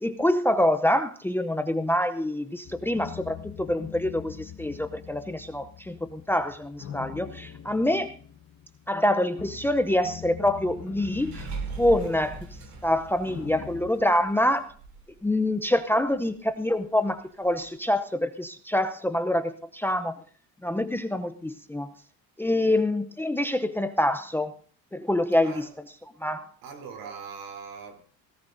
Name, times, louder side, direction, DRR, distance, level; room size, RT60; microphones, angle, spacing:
voice 1, 0.0-8.2 8.9-11.5 11.8-12.4 12.8-14.7 15.2-20.1 20.6-21.9 22.4-24.5 24.9-25.6 26.2-26.5, left 1 dB, 5° left, 0.7 m, -26 dB
sound 1, 2.6-13.9, left 9 dB, 45° left, 1.6 m, -43 dB
sound 2, 10.5-15.2 15.6-15.7 15.9-16.2 16.5-16.6 17.5-17.8, right 6 dB, 55° right, 3.0 m, -40 dB
voice 2, 12.0-12.3 25.4-25.7 26.6-28.0, right 5 dB, 70° right, 3.7 m, -41 dB
21.5 x 17.0 x 2.7 m
cardioid pair, 120°, 35 cm